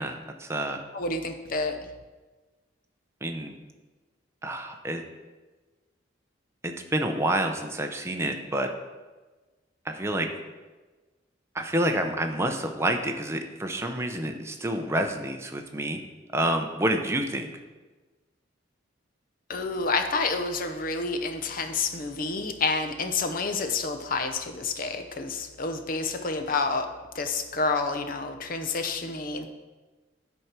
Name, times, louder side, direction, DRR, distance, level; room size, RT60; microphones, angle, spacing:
voice 1, 0.0-0.8 3.2-3.5 4.4-5.0 6.6-8.7 9.9-10.3 11.5-16.0 16.3-17.5, right 1 dB, 15° right, 4 dB, 0.6 m, -28 dB
voice 2, 0.9-1.8 19.5-26.9 27.1-29.5, left 3 dB, 45° left, 7 dB, 0.7 m, -29 dB
9.7 x 4.5 x 5.9 m, 1.3 s
head